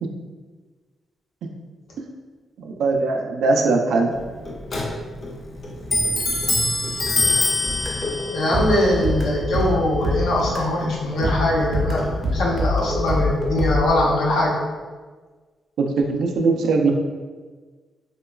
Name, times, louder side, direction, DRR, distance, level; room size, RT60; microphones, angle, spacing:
voice 1, 2.6-4.1 15.8-16.9, right 3 dB, 85° right, 3 dB, 0.3 m, -20 dB
Clock, 4.1-13.4, left 2 dB, 40° left, 0.4 m, -27 dB
sound 1, 7.7-10.8 11.2-13.9, left 1 dB, 15° right, 0.5 m, -25 dB
voice 2, 8.3-14.5, left 1 dB, 85° left, -4 dB, 0.6 m, -21 dB
2.9 x 2.2 x 2.3 m, 1.4 s
cardioid pair, 135°, 0 cm